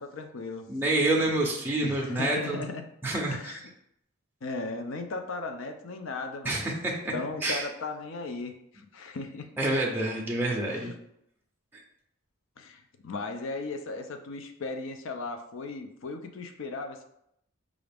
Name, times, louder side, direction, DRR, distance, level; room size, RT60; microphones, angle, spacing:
voice 1, 0.0-0.6 1.8-2.8 3.3-3.6 4.4-6.8 7.1-9.5 10.6-10.9 12.6-17.0, left 3 dB, 60° left, 6 dB, 0.5 m, -37 dB
voice 2, 0.7-2.6 3.0-3.6 6.4-7.1 7.4-7.7 9.6-10.9 11.7-11.8, right 2 dB, 10° right, -2 dB, 0.5 m, -28 dB
4.9 x 2.4 x 3.4 m, 0.75 s
head